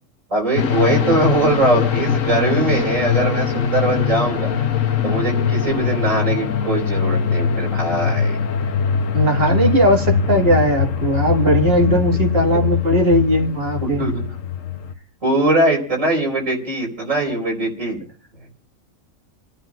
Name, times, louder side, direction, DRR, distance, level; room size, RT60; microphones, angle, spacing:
voice 1, 0.3-4.5 5.0-8.4 11.9-12.0 13.8-14.2 15.2-18.0, right 2 dB, 80° right, -2 dB, 5.0 m, -21 dB
sound 1, 0.6-14.9, left 7 dB, 85° left, 1.3 m, -21 dB
voice 2, 9.1-14.1, right 1 dB, 50° right, 2 dB, 2.2 m, -18 dB
29.5 x 10.0 x 2.5 m, 0.41 s
omnidirectional pair, 1.3 m